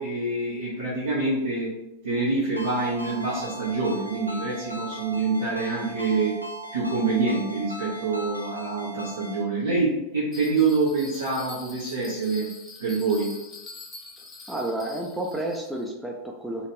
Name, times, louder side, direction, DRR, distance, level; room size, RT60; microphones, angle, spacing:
voice 1, 0.0-1.7 2.0-6.3 6.7-12.5 12.8-13.3, right 3 dB, 70° right, -8 dB, 0.9 m, -26 dB
Ringtone, 2.6-9.4, right 1 dB, 90° right, 0.6 m, -38 dB
Bell, 10.3-15.9, left 3 dB, 20° left, 0.8 m, -44 dB
voice 2, 14.5-16.7, right 1 dB, 5° right, -1 dB, 0.4 m, -31 dB
3.1 x 2.9 x 2.8 m, 0.92 s
figure-of-eight pair, 90°, 0 cm